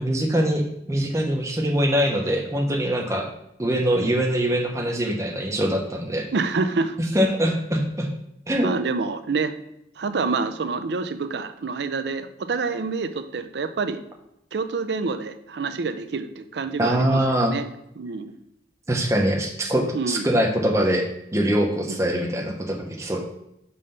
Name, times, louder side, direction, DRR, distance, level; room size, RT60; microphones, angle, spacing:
voice 1, 0.0-3.3 3.6-6.3 7.1-8.1 8.5-8.7 16.8-17.5 18.9-23.2, right 1 dB, 15° right, 1 dB, 0.7 m, -23 dB
voice 2, 6.3-7.0 8.6-9.5 10.0-14.0 14.5-17.7 18.0-18.3 19.9-20.3 21.9-22.0, right 4 dB, 70° right, 10 dB, 0.4 m, -27 dB
5.4 x 3.3 x 5.4 m, 0.80 s
head